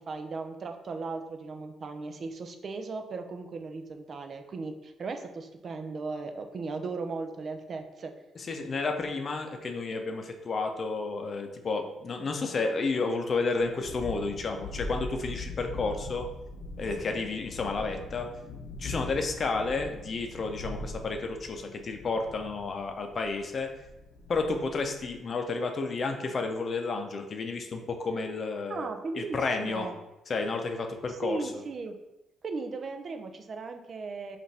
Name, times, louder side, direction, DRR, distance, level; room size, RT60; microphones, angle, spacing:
voice 1, 0.1-8.1 28.7-30.0 31.1-32.0 32.4-34.4, right 4 dB, 50° right, 6 dB, 0.4 m, -37 dB
voice 2, 8.4-16.3 16.8-18.3 18.8-23.7 24.3-28.9 29.1-29.9 30.3-31.5, left 3 dB, 45° left, 4 dB, 0.6 m, -31 dB
Thunderstorm, 13.6-25.2, left 2 dB, 85° left, 0.7 m, -41 dB
5.2 x 2.5 x 3.3 m, 0.99 s
cardioid pair, 90°, 0 cm